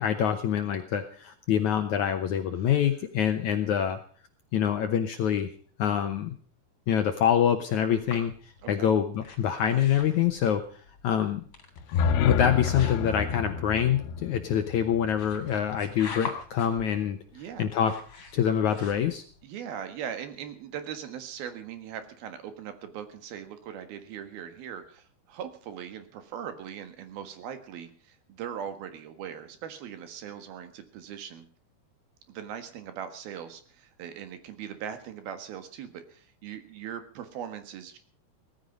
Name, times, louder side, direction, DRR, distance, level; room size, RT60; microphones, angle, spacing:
voice 1, 0.0-4.0 4.5-5.5 5.8-6.3 6.9-8.3 8.7-10.6 11.0-11.4 12.2-17.2 17.6-18.0 18.3-19.2, left 9 dB, 70° left, 7 dB, 1.9 m, -25 dB
sound 1, 8.0-19.4, left 5 dB, 40° left, 3.8 m, -45 dB
sound 2, 11.8-15.8, left 6 dB, 85° left, 2.9 m, -29 dB
voice 2, 17.3-17.7 19.4-31.5 32.3-38.0, right 8 dB, 70° right, 9 dB, 3.4 m, -40 dB
18.0 x 14.5 x 5.3 m, 0.43 s
omnidirectional pair, 4.5 m